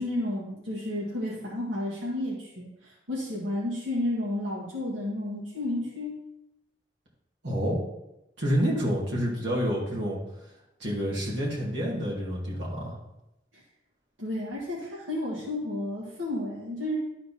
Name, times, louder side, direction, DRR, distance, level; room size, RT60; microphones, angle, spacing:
voice 1, 0.0-6.2 14.2-16.9, left 1 dB, 90° right, -6 dB, 1.9 m, -32 dB
voice 2, 7.4-7.8 8.4-10.2 10.8-13.0, equal, 65° right, -5 dB, 2.6 m, -28 dB
11.5 x 4.3 x 4.3 m, 0.90 s
head